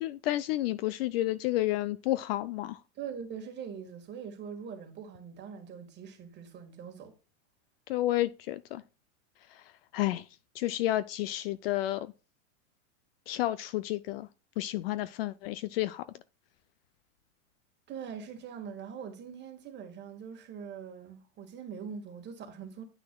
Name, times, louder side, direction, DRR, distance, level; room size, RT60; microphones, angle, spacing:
voice 1, 0.0-2.8 7.9-8.8 9.5-9.6 9.9-10.3 10.6-12.1 13.3-14.3 14.6-16.0, left 15 dB, 50° left, 0.4 m, -31 dB
voice 2, 2.9-7.1 17.9-22.8, right 7 dB, 25° right, 1.7 m, -42 dB
9.9 x 5.9 x 2.2 m
supercardioid pair, 135°, 40 cm